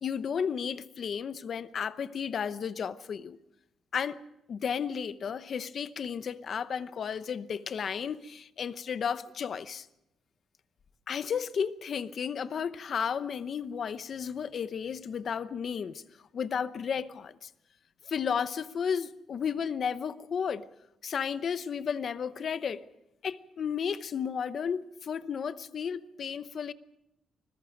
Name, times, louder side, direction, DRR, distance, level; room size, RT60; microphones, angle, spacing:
voice 1, 0.0-3.4 3.9-4.2 4.5-9.9 11.1-16.0 16.3-17.5 18.0-20.6 21.0-22.9 23.2-26.7, left 7 dB, 45° left, 0.8 m, -33 dB
25.5 x 20.5 x 5.2 m
cardioid pair, 165°, 0 cm